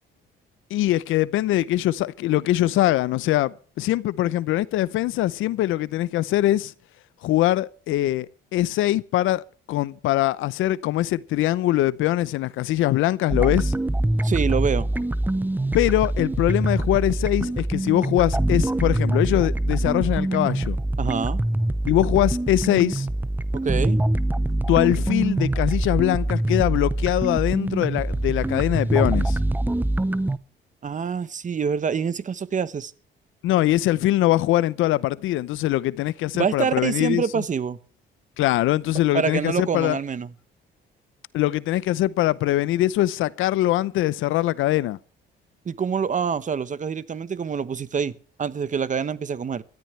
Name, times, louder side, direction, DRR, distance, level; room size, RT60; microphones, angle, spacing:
voice 1, 0.7-6.7 7.2-9.4 9.7-13.7 15.7-20.8 21.9-23.1 24.7-29.4 33.4-37.4 38.4-40.0 41.3-45.0, left 15 dB, 90° left, 0.7 m, -22 dB
sound 1, 13.3-30.4, right 1 dB, 10° right, 0.7 m, -24 dB
voice 2, 14.2-14.9 21.0-21.4 23.5-24.0 30.8-32.9 36.3-37.8 39.1-40.3 45.6-49.6, right 6 dB, 40° right, 1.0 m, -26 dB
22.0 x 13.5 x 3.3 m
cardioid pair, 90°, 20 cm